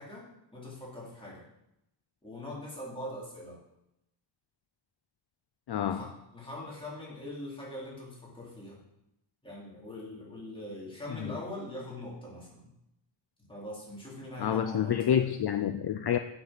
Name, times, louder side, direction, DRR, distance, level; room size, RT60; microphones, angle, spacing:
voice 1, 0.0-1.5 2.2-3.6 5.9-8.8 9.4-12.7 13.5-15.3, left 1 dB, 10° left, -6 dB, 3.6 m, -42 dB
voice 2, 5.7-6.1 11.2-11.3 14.4-16.2, left 9 dB, 55° left, 7 dB, 0.5 m, -28 dB
8.2 x 7.8 x 6.0 m, 0.85 s
wide cardioid pair, 165°, 46 cm